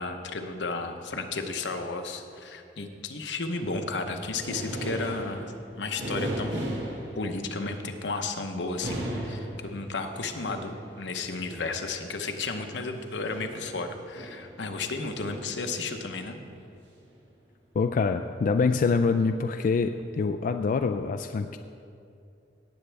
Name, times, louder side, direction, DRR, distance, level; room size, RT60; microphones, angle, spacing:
voice 1, 0.0-6.7 7.1-16.4, left 3 dB, 80° left, 6 dB, 0.9 m, -33 dB
sound 1, 3.8-7.8 8.6-12.3 13.3-16.1 17.0-17.2 18.6-19.4 19.9-20.0, right 1 dB, 90° right, 1.7 m, -37 dB
voice 2, 17.8-21.6, left 4 dB, 50° left, 7 dB, 0.3 m, -25 dB
17.5 x 8.0 x 3.4 m, 2.5 s
head